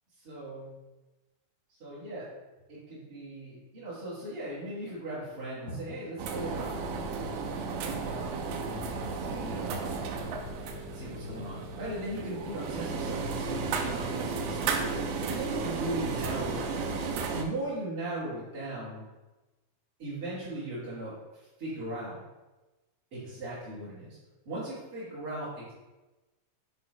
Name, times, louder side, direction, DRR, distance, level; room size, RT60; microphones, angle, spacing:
voice 1, 0.2-0.7 1.8-2.3 2.7-6.9 7.6-8.3 8.6-9.9 10.9-19.0 20.0-21.1 21.6-22.2 23.1-24.2 24.5-25.7, right 1 dB, 35° right, -11 dB, 2.4 m, -38 dB
sound 1, 6.2-17.4, right 5 dB, 80° right, 2.8 m, -34 dB
Fixed-wing aircraft airplane, 6.9-17.2, left 5 dB, 90° left, 3.3 m, -48 dB
8.7 x 3.7 x 5.3 m, 1.1 s
omnidirectional pair, 5.5 m